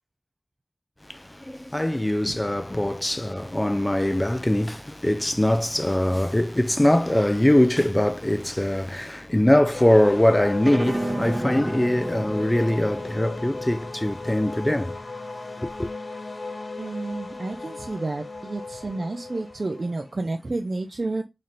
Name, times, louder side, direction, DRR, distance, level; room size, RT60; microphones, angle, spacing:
voice 1, 1.0-15.0 15.6-15.9, left 1 dB, 20° left, 0.3 m, -22 dB
sound 1, 9.7-20.1, left 3 dB, 75° left, 0.7 m, -36 dB
sound 2, 10.6-15.9, right 1 dB, 45° right, 1.0 m, -33 dB
voice 2, 16.8-21.2, right 2 dB, 65° right, 0.4 m, -30 dB
4.1 x 2.7 x 3.1 m
wide cardioid pair, 45°, 0 cm